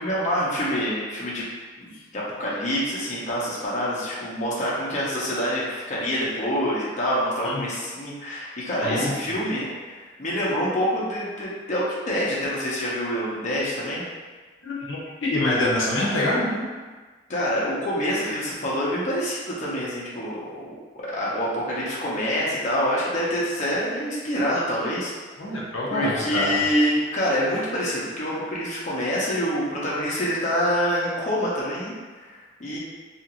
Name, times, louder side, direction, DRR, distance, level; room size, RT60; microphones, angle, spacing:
voice 1, 0.0-1.4 1.8-9.7 10.0-14.0 17.3-20.7 21.1-25.1 25.9-32.8, equal, 40° left, -7 dB, 0.7 m, -26 dB
voice 2, 8.8-9.1 14.6-16.6 25.4-26.6, left 1 dB, 75° left, -5 dB, 0.6 m, -25 dB
2.8 x 2.5 x 2.8 m, 1.4 s
head